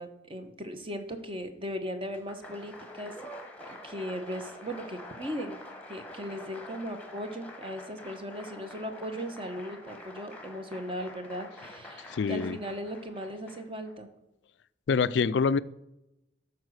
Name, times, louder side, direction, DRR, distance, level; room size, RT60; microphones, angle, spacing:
voice 1, 0.0-3.1 3.7-5.6 5.9-14.1, equal, 30° right, 1.0 m, -38 dB
Applause, 2.0-13.9, left 1 dB, 10° left, 1.2 m, -47 dB
voice 2, 12.1-12.6 14.9-15.6, left 5 dB, 70° left, 0.4 m, -25 dB
12.5 x 4.8 x 6.5 m
head